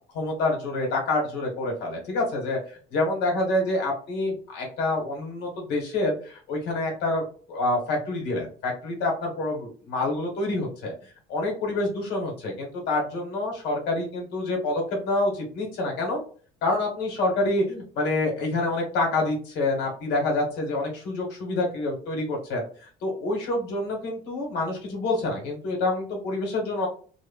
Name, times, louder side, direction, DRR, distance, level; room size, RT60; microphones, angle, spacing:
voice 1, 0.1-10.9 11.3-16.2 16.6-26.9, left 2 dB, 85° left, 0 dB, 1.2 m, -27 dB
2.9 x 2.1 x 2.2 m, 0.43 s
cardioid pair, 110°, 17 cm